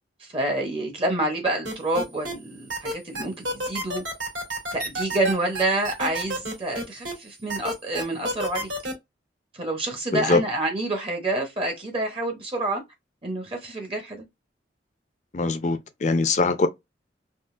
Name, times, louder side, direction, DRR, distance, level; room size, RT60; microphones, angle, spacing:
voice 1, 0.2-4.0 4.7-8.7 9.5-12.8 13.2-14.3, right 2 dB, 30° right, 0.7 m, -28 dB
sound 1, 1.6-2.3 2.7-7.1 7.5-8.9, right 1 dB, 85° right, 1.9 m, -29 dB
voice 2, 15.3-16.7, left 3 dB, 40° left, 0.4 m, -22 dB
3.7 x 2.3 x 2.4 m
head